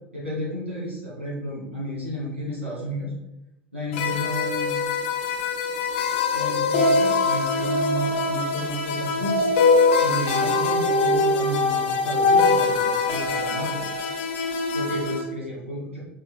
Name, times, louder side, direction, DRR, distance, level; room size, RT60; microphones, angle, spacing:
voice 1, 0.1-3.1 3.7-4.8 6.3-9.7 10.0-13.8 14.1-14.2 14.7-16.0, equal, 90° right, -5 dB, 2.1 m, -32 dB
sound 1, 3.9-15.2, left 3 dB, 65° left, 1.1 m, -23 dB
6.5 x 6.3 x 2.3 m, 0.89 s
figure-of-eight pair, 75°, 7 cm